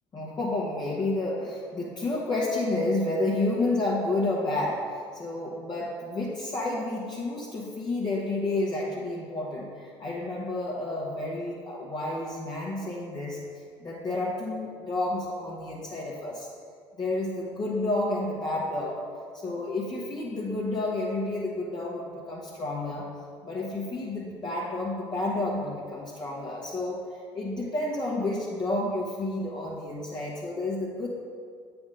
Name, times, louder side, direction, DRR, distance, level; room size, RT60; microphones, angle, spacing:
voice 1, 0.1-13.4 13.8-16.5 17.0-19.0 19.3-23.1 23.4-27.1 27.3-31.1, left 2 dB, 30° left, -5 dB, 1.1 m, -30 dB
8.4 x 3.5 x 5.3 m, 2.1 s
figure-of-eight pair, 60°, 14 cm